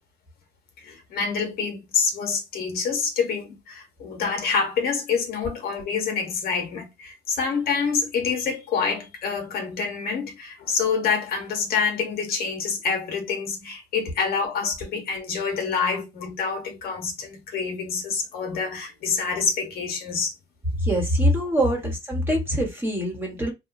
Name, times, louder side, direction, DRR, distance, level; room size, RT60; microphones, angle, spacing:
voice 1, 0.8-20.3, left 5 dB, 65° left, 0.9 m, -27 dB
voice 2, 20.8-23.5, equal, 15° right, 1.1 m, -23 dB
2.9 x 2.2 x 2.5 m
cardioid pair, 110°, 17 cm